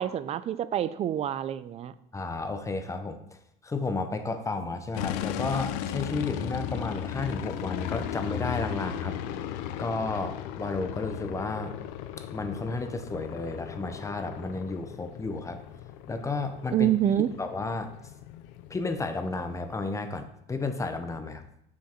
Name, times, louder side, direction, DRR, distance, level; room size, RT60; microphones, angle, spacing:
voice 1, 0.0-1.9 16.7-17.3, right 11 dB, 30° right, 15 dB, 0.4 m, -27 dB
voice 2, 2.1-3.2 3.6-9.2 9.8-11.8 12.2-15.6 16.1-16.9 17.4-17.9 18.7-21.5, left 3 dB, 15° left, 7 dB, 0.7 m, -32 dB
sound 1, 4.9-19.7, left 11 dB, 85° left, 0.6 m, -36 dB
7.1 x 6.0 x 4.4 m, 0.75 s
cardioid pair, 130°, 21 cm